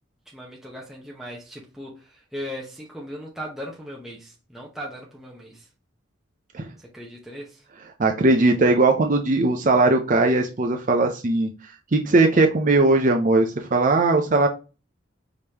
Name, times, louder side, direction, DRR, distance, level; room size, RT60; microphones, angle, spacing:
voice 1, 0.3-5.7 6.9-7.6, equal, ahead, -3 dB, 0.8 m, -38 dB
voice 2, 8.0-11.5 11.9-14.5, right 2 dB, 40° right, 3 dB, 0.5 m, -19 dB
4.9 x 3.6 x 2.8 m, 0.31 s
head